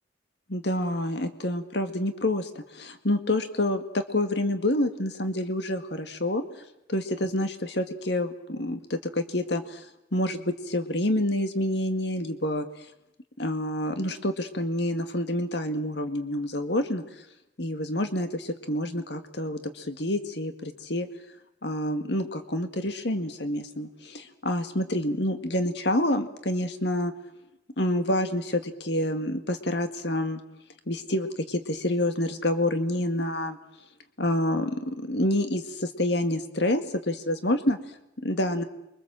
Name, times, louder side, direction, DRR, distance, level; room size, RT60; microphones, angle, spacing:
voice 1, 0.5-6.4 6.9-9.9 10.1-12.7 13.4-17.0 17.6-21.1 21.6-27.1 27.8-30.4 30.9-33.6 34.2-37.8 38.2-38.6, left 1 dB, 65° left, 7 dB, 2.0 m, -28 dB
29.5 x 24.0 x 7.7 m, 0.87 s
head